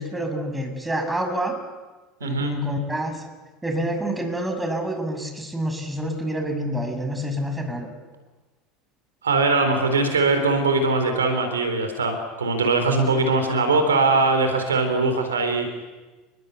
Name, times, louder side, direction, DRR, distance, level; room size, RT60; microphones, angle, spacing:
voice 1, 0.0-1.6 2.2-3.2 3.6-7.9 13.1-13.2, equal, 10° right, 5 dB, 6.7 m, -27 dB
voice 2, 2.2-2.5 9.2-15.7, right 3 dB, 80° right, 7 dB, 3.9 m, -21 dB
29.0 x 21.5 x 8.3 m, 1.2 s
figure-of-eight pair, 70°, 0 cm